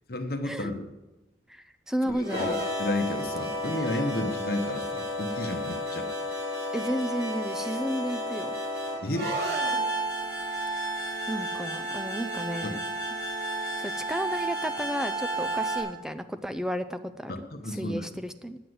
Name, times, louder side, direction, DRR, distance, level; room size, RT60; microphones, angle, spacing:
voice 1, 0.1-0.9 2.0-6.1 9.0-9.3 12.6-12.7 17.3-18.0, left 1 dB, 55° left, 5 dB, 1.0 m, -32 dB
voice 2, 1.5-2.6 6.7-8.6 11.3-12.8 13.8-17.3 17.7-18.6, equal, 5° right, 9 dB, 0.5 m, -32 dB
sound 1, 2.1-15.8, right 1 dB, 65° right, 3.7 m, -32 dB
9.4 x 9.3 x 7.9 m, 1.0 s
head